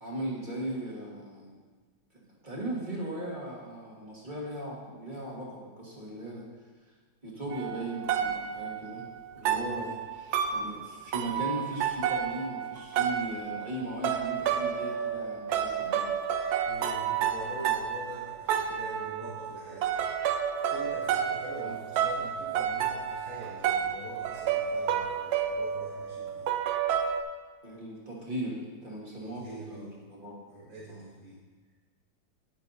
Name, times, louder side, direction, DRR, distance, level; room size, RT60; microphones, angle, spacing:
voice 1, 0.0-1.6 2.4-6.5 7.2-9.0 9.4-16.2 21.6-21.8 27.6-30.4 30.9-31.0, right 1 dB, 30° right, -4 dB, 1.7 m, -38 dB
sound 1, 7.5-27.2, right 8 dB, 75° right, 1.1 m, -31 dB
voice 2, 9.4-9.8 16.6-20.1 20.7-26.5 29.2-30.0 30.5-31.4, right 2 dB, 90° right, -10 dB, 2.8 m, -44 dB
9.6 x 9.4 x 2.7 m, 1.4 s
omnidirectional pair, 1.8 m